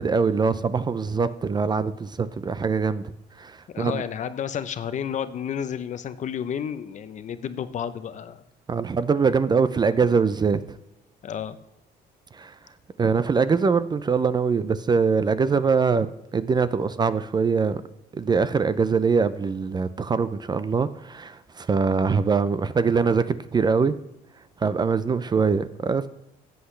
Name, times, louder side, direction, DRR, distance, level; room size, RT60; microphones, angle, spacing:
voice 1, 0.0-3.0 3.4-4.0 8.7-10.8 12.3-12.5 13.0-16.1 16.3-17.8 18.1-23.9 24.6-26.1, right 5 dB, 25° right, 14 dB, 0.4 m, -23 dB
voice 2, 3.7-8.4 11.2-11.6, left 8 dB, 45° left, 12 dB, 0.7 m, -31 dB
14.0 x 8.1 x 3.2 m, 0.92 s
cardioid pair, 110°, 17 cm